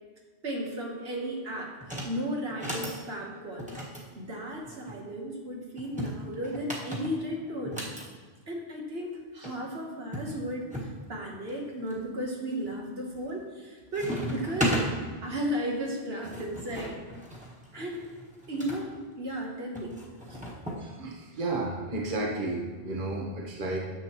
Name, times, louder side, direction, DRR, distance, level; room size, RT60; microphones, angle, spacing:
voice 1, 0.4-1.7 2.0-3.7 4.1-7.8 8.5-14.8 15.2-17.0 17.7-18.1 18.5-20.0 20.3-20.4, equal, 70° right, -1 dB, 1.4 m, -35 dB
sound 1, 1.8-2.1 2.5-3.0 3.6-5.0 5.8-8.1 9.1-9.2 9.4-9.5 10.1-10.9 11.5-12.0 12.5-12.9 13.2-13.7 13.9-14.9 15.9-18.8 19.8-20.8, equal, 5° right, 1.5 m, -35 dB
voice 2, 20.8-23.8, right 2 dB, 50° right, -1 dB, 1.3 m, -32 dB
10.5 x 7.1 x 3.0 m, 1.4 s
omnidirectional pair, 1.1 m